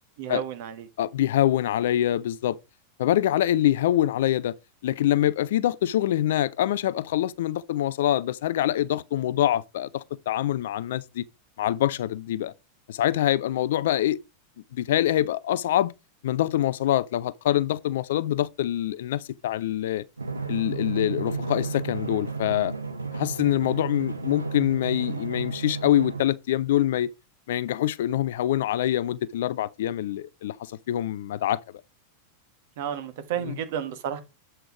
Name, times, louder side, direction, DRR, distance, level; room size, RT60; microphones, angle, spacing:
voice 1, 0.2-0.9 32.8-34.2, right 9 dB, 50° right, 1.2 m, -31 dB
voice 2, 1.0-2.6 3.0-4.5 4.8-11.2 11.6-12.5 12.9-14.2 14.7-15.9 16.2-20.0 20.5-22.7 23.1-27.1 27.5-30.6 30.9-31.6 33.5-33.6, left 12 dB, 55° left, 0.4 m, -25 dB
Drum, 20.2-26.3, right 4 dB, 80° right, 0.8 m, -32 dB
8.0 x 4.4 x 4.7 m
figure-of-eight pair, 90°, 0 cm